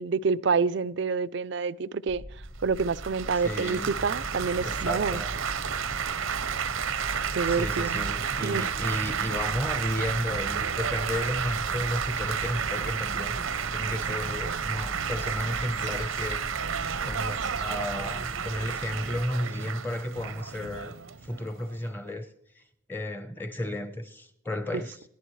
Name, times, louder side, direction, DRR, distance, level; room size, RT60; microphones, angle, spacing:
voice 1, 0.0-2.2 2.6-5.2 7.3-8.1 8.4-8.7 24.7-24.8, right 5 dB, 60° right, 0.5 m, -27 dB
sound 1, 2.1-18.2, equal, 70° left, 2.3 m, -44 dB
Laughter / Applause / Chatter, 2.8-21.9, right 7 dB, 90° right, 0.7 m, -32 dB
voice 2, 3.3-4.0 4.6-5.4 7.5-16.4 16.9-21.0 21.2-22.6 22.9-25.0, left 1 dB, 10° left, 0.8 m, -33 dB
sound 2, 3.7-19.3, equal, 40° left, 1.3 m, -41 dB
27.5 x 10.5 x 3.2 m
head